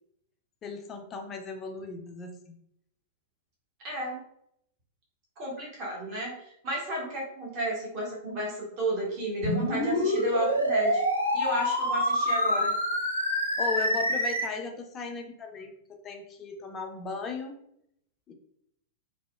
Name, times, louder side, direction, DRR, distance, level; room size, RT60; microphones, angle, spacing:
voice 1, 0.6-2.5 13.6-17.6 18.3-18.4, left 4 dB, 25° left, 4 dB, 0.4 m, -37 dB
voice 2, 3.8-4.2 5.4-11.0 11.3-12.7, right 1 dB, 40° right, -3 dB, 0.7 m, -33 dB
sound 1, 9.4-14.4, equal, 85° left, 0.5 m, -26 dB
2.7 x 2.0 x 2.2 m, 0.74 s
figure-of-eight pair, 95°, 0 cm